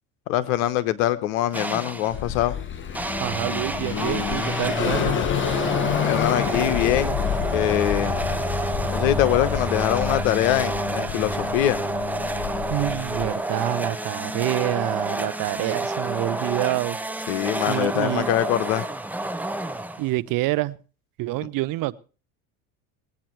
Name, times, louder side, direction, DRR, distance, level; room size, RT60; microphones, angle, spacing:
voice 1, 0.3-2.6 5.9-7.2 7.5-8.1 8.9-11.8 17.3-18.8, left 13 dB, 85° left, 13 dB, 1.2 m, -23 dB
sound 1, 1.5-2.2 2.9-20.3, right 2 dB, 5° right, 1.0 m, -29 dB
Car passing by / Accelerating revving vroom, 2.1-13.3, left 6 dB, 30° left, 1.1 m, -29 dB
voice 2, 3.2-5.3 12.7-17.0 17.7-18.3 20.0-20.8 21.2-21.9, right 18 dB, 55° right, 19 dB, 0.7 m, -27 dB
sound 2, 4.8-12.0, left 8 dB, 45° left, 1.6 m, -31 dB
19.5 x 9.0 x 4.5 m, 0.36 s
supercardioid pair, 100°, 40 cm